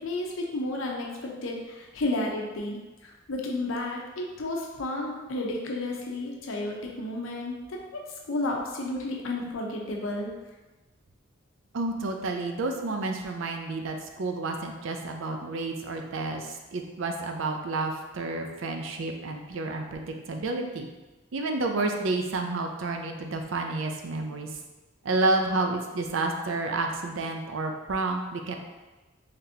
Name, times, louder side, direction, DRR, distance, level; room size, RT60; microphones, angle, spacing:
voice 1, 0.0-8.0 8.3-10.3, left 2 dB, 75° left, -1 dB, 0.7 m, -32 dB
voice 2, 11.7-20.9 21.3-24.5 25.0-28.6, right 2 dB, 70° right, 4 dB, 0.5 m, -30 dB
3.9 x 3.3 x 2.8 m, 1.2 s
head